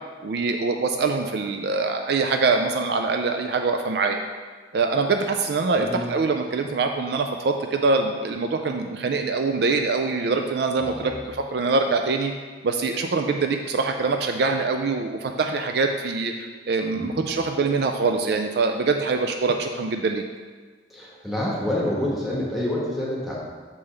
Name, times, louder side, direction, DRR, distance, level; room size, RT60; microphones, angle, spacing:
voice 1, 0.2-4.2 4.7-12.3 12.6-20.2, right 4 dB, 60° right, 5 dB, 0.4 m, -24 dB
voice 2, 5.8-6.1 10.8-11.2 16.9-17.3 20.9-23.4, left 1 dB, ahead, -5 dB, 1.3 m, -28 dB
6.7 x 5.3 x 3.4 m, 1.5 s
head